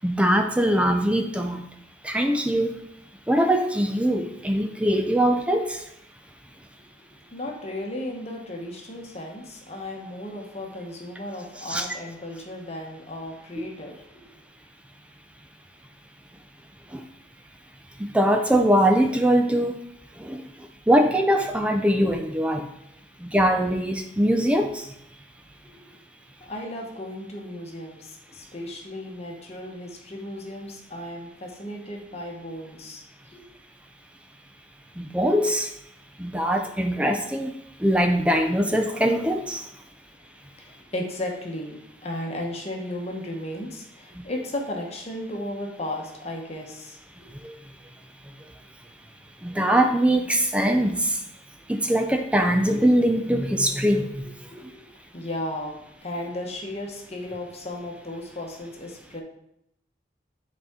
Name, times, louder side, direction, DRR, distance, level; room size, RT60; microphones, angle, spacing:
voice 1, 0.0-1.6 2.0-2.7 3.3-5.8 11.7-11.9 13.6-13.7 16.9-17.0 18.0-19.7 20.2-20.4 20.9-22.7 23.2-24.9 35.0-35.7 36.2-37.5 37.8-39.6 44.2-44.3 47.4-47.5 49.4-51.2 51.7-54.2, right 1 dB, 5° right, 5 dB, 0.4 m, -22 dB
voice 2, 7.3-14.3 25.6-26.0 26.4-33.5 40.6-47.3 54.5-54.9 55.1-59.2, left 1 dB, 35° left, 0 dB, 1.0 m, -35 dB
8.0 x 4.2 x 3.6 m, 0.77 s
head